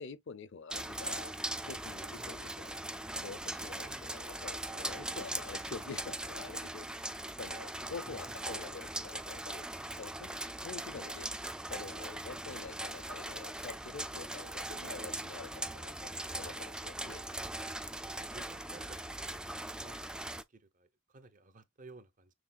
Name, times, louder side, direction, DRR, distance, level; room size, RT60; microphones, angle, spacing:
voice 1, 0.0-1.3 1.7-2.7 3.2-9.7 10.0-11.3 11.7-16.1 16.4-17.2, left 4 dB, 60° left, 0.6 m, -47 dB
sound 1, 0.7-20.4, right 1 dB, 5° right, 0.3 m, -40 dB
voice 2, 8.1-8.4 18.0-22.3, right 2 dB, 40° right, 0.7 m, -56 dB
6.3 x 3.7 x 2.3 m
head